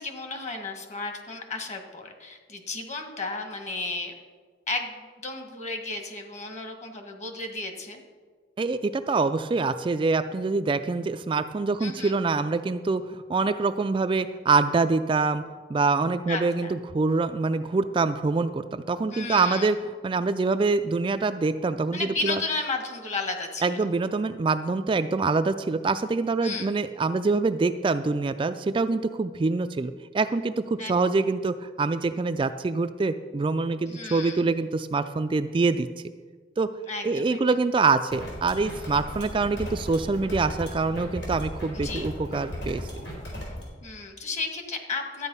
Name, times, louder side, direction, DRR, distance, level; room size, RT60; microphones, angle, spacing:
voice 1, 0.0-4.1 4.7-8.0 11.8-12.1 16.3-16.7 19.1-19.7 21.9-23.8 26.4-26.7 30.8-30.9 33.9-34.4 36.9-37.4 41.8-42.1 43.8-45.3, left 3 dB, 40° left, 5 dB, 1.5 m, -33 dB
voice 2, 8.6-15.4 15.7-19.8 20.0-22.4 23.6-35.9 36.6-36.7 37.0-42.8, right 3 dB, 30° right, 9 dB, 0.3 m, -25 dB
sound 1, 38.1-43.6, equal, 70° left, 4.0 m, -36 dB
12.5 x 8.9 x 5.5 m, 1.5 s
head